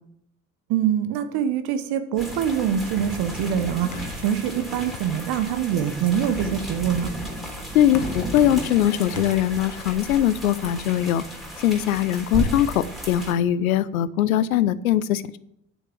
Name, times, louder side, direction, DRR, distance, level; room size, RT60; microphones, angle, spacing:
voice 1, 0.7-7.1, right 9 dB, 60° right, 10 dB, 1.2 m, -24 dB
sound 1, 2.2-13.3, right 1 dB, ahead, 3.4 m, -34 dB
sound 2, 3.9-5.7 6.2-10.8, left 7 dB, 45° left, 1.3 m, -42 dB
voice 2, 7.7-11.2 11.6-15.2, left 11 dB, 75° left, 17 dB, 0.6 m, -21 dB
8.8 x 6.7 x 7.2 m, 0.79 s
figure-of-eight pair, 50°, 42 cm